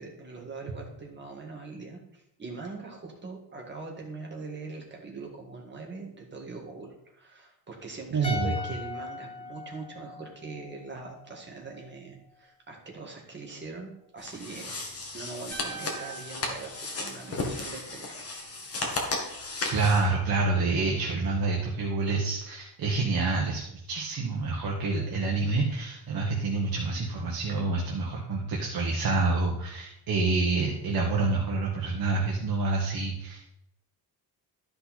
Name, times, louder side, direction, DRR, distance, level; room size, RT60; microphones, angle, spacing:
voice 1, 0.0-14.8 15.1-18.2 18.5-18.8, right 3 dB, 25° right, 0 dB, 1.9 m, -42 dB
voice 2, 8.1-8.5 19.7-33.5, right 3 dB, 55° right, -1 dB, 1.5 m, -27 dB
sound 1, 8.2-11.5 11.7-11.9, left 3 dB, 15° left, 0.8 m, -39 dB
sound 2, 14.2-20.1, left 3 dB, 35° left, 1.7 m, -35 dB
sound 3, 15.5-17.8, right 7 dB, 75° right, 1.9 m, -45 dB
12.5 x 5.5 x 4.3 m, 0.77 s
wide cardioid pair, 175°, 41 cm